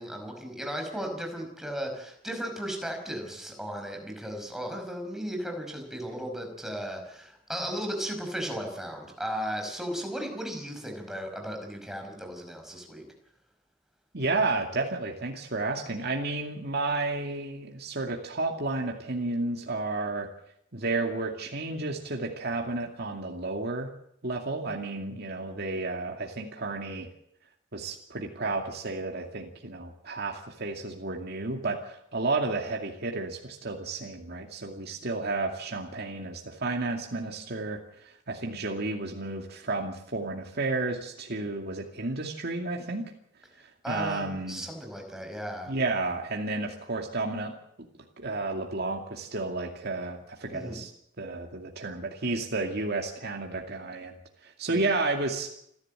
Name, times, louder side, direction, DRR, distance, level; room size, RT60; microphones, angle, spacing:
voice 1, 0.0-13.0 43.8-45.7 50.5-50.8 54.7-54.9, equal, ahead, 3 dB, 5.4 m, -36 dB
voice 2, 14.1-20.3 20.7-23.9 24.2-27.1 27.7-37.8 38.0-43.1 43.9-44.6 45.7-47.9 48.2-50.9 51.2-54.1 54.4-55.5, right 3 dB, 55° right, 1 dB, 2.4 m, -32 dB
29.0 x 11.5 x 8.9 m, 0.75 s
head